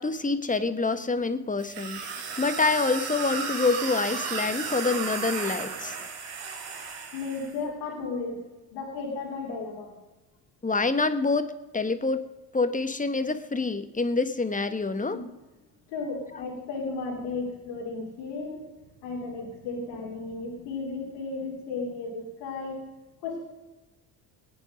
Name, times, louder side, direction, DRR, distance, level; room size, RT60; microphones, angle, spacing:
voice 1, 0.0-6.0 10.6-11.5 11.7-12.2 12.5-15.2, left 3 dB, 20° left, 10 dB, 1.4 m, -26 dB
sound 1, 1.6-7.5, right 5 dB, 75° right, 3.0 m, -34 dB
voice 2, 7.1-9.9 15.1-15.3 15.9-18.6 19.0-22.8 23.2-23.4, left 3 dB, 80° left, 0 dB, 3.2 m, -34 dB
19.0 x 9.1 x 5.3 m, 1.1 s
supercardioid pair, 70°, 42 cm